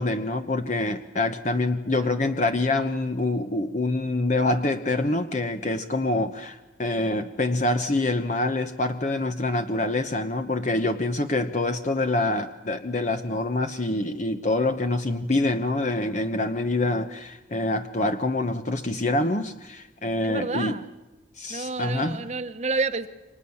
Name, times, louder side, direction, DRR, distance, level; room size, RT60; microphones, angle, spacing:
voice 1, 0.0-20.8 21.4-22.2, left 2 dB, 40° left, 7 dB, 1.1 m, -26 dB
voice 2, 20.2-20.9 21.5-23.1, right 3 dB, 35° right, 8 dB, 1.1 m, -29 dB
29.5 x 25.0 x 7.2 m, 1.1 s
head